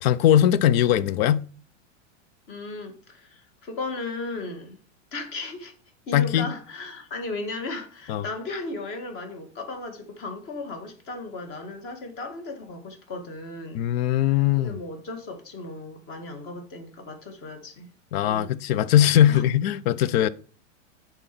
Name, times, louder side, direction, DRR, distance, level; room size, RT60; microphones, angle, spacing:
voice 1, 0.0-1.4 6.1-6.5 8.1-8.2 13.7-14.7 18.1-20.3, left 11 dB, 50° left, 0.6 m, -20 dB
voice 2, 2.5-4.8 5.1-5.7 6.1-13.8 14.2-14.3 14.6-17.9 19.3-19.4, left 3 dB, 35° left, 1.9 m, -36 dB
7.9 x 4.0 x 5.9 m
supercardioid pair, 140°, 38 cm